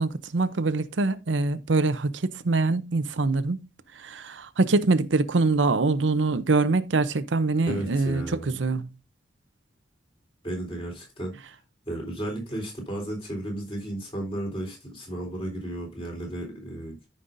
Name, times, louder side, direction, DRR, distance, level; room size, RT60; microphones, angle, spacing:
voice 1, 0.0-3.7 4.0-8.9, right 3 dB, 90° right, 0.7 m, -24 dB
voice 2, 7.7-8.5 10.4-11.4 11.9-17.1, right 1 dB, 30° left, 3.7 m, -34 dB
13.5 x 5.4 x 2.6 m
head